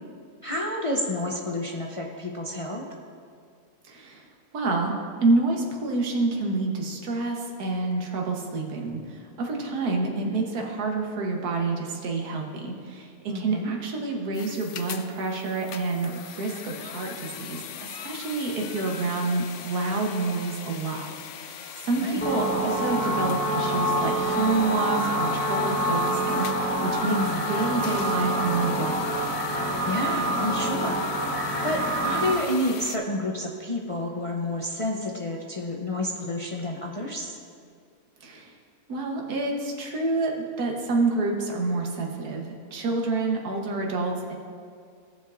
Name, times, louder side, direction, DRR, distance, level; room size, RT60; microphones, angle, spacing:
voice 1, 0.4-2.9 13.3-13.7 22.0-22.2 27.0-27.5 29.8-31.0 31.6-37.4, left 1 dB, 40° left, -2 dB, 0.5 m, -29 dB
voice 2, 3.9-4.3 4.5-21.1 21.4-27.2 27.5-29.2 38.2-38.5 38.9-42.5 42.7-44.3, right 3 dB, 80° right, 0 dB, 1.6 m, -28 dB
sound 1, 14.3-33.0, left 8 dB, 65° left, 0.8 m, -40 dB
sound 2, 22.2-32.3, right 1 dB, 10° left, 0.9 m, -26 dB
17.5 x 7.3 x 2.5 m, 2.2 s
omnidirectional pair, 1.6 m